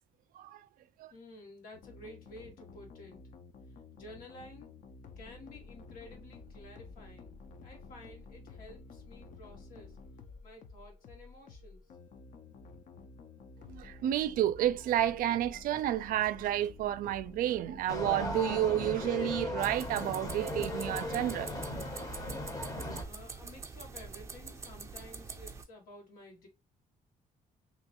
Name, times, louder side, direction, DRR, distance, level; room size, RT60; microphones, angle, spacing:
voice 1, 1.1-3.3 3.9-4.7 5.2-10.0 10.4-11.8 23.0-26.5, left 1 dB, 80° left, 1.5 m, -52 dB
sound 1, 1.7-21.6, left 4 dB, 60° left, 0.6 m, -51 dB
voice 2, 13.7-21.5, right 12 dB, 75° right, 0.4 m, -30 dB
sound 2, 17.9-23.0, left 1 dB, 25° left, 0.7 m, -37 dB
sound 3, 19.6-25.6, right 4 dB, 20° right, 0.5 m, -45 dB
3.1 x 2.8 x 2.8 m
cardioid pair, 140°, 14 cm